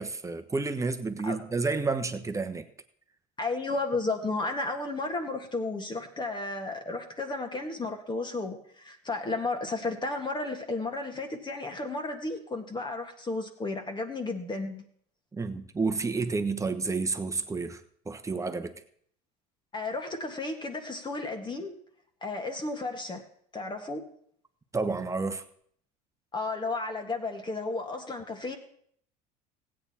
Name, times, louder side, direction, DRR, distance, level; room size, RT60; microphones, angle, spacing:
voice 1, 0.0-2.7 15.3-18.7 24.7-25.4, right 4 dB, 15° right, 7 dB, 1.1 m, -30 dB
voice 2, 3.4-14.9 19.7-21.8 22.2-23.2 23.5-24.0 26.3-28.6, left 3 dB, 25° left, 5 dB, 1.8 m, -33 dB
16.0 x 8.8 x 4.3 m, 0.64 s
hypercardioid pair, 85°, 20 cm